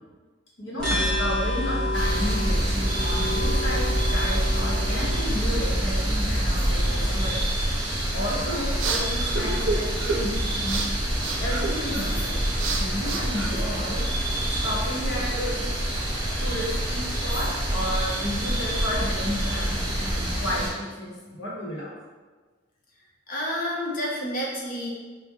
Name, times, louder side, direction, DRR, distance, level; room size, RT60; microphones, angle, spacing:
voice 1, 0.6-7.4 8.1-10.9 11.3-12.3 12.7-14.0 14.5-15.8 16.4-21.9, left 1 dB, 75° left, -5 dB, 1.3 m, -32 dB
sound 1, 0.8-7.3, equal, 5° left, 1.2 m, -27 dB
sound 2, 1.9-20.7, right 1 dB, 25° right, 1.2 m, -27 dB
sound 3, 8.6-14.2, right 3 dB, 75° right, 0.5 m, -32 dB
voice 2, 23.3-24.9, equal, 50° left, -3 dB, 1.0 m, -29 dB
5.8 x 2.5 x 3.1 m, 1.3 s
head